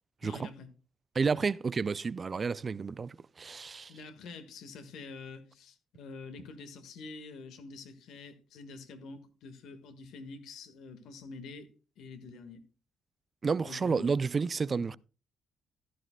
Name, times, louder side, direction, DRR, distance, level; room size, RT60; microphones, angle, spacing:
voice 1, 0.2-0.7 3.9-11.7 12.0-12.6 13.6-14.1 14.7-15.0, left 3 dB, 75° left, 1.6 m, -47 dB
voice 2, 1.2-3.9 13.4-15.0, right 5 dB, 40° right, 0.4 m, -31 dB
14.5 x 11.5 x 2.2 m
supercardioid pair, 60°, 0 cm